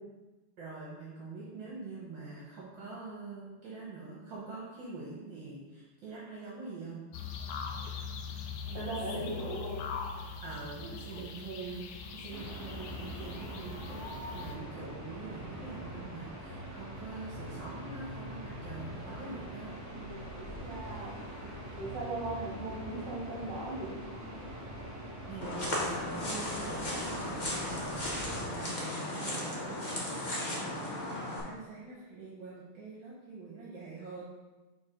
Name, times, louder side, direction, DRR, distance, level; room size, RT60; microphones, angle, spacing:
voice 1, 0.6-7.0 8.7-9.4 10.4-14.0 14.3-19.7 25.2-34.2, right 4 dB, 65° right, -5 dB, 1.7 m, -45 dB
sound 1, 7.1-14.5, left 5 dB, 75° left, 1.1 m, -41 dB
voice 2, 8.7-9.8 10.8-10.9 20.0-21.2 21.8-24.0, right 2 dB, 40° right, -5 dB, 2.2 m, -38 dB
sound 2, 12.3-28.4, right 1 dB, 15° right, 0.6 m, -43 dB
sound 3, 25.4-31.4, left 1 dB, 35° left, 0.8 m, -35 dB
4.7 x 4.1 x 5.0 m, 1.2 s
omnidirectional pair, 2.4 m